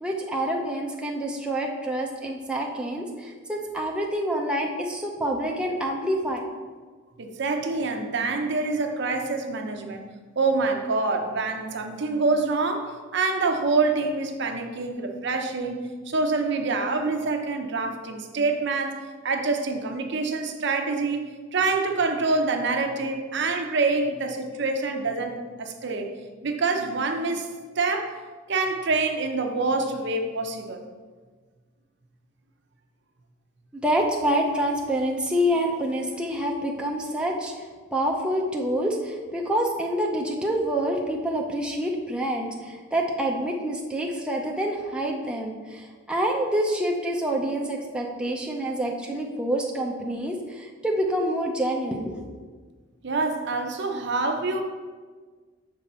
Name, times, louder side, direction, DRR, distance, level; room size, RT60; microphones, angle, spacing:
voice 1, 0.0-6.4 33.8-52.3, right 1 dB, 5° right, -1 dB, 0.6 m, -27 dB
voice 2, 7.2-10.0 10.4-15.8 16.1-26.1 26.4-27.5 27.8-28.1 28.5-30.8 53.0-54.6, right 3 dB, 60° right, 4 dB, 0.7 m, -26 dB
6.9 x 5.4 x 4.3 m, 1.5 s
head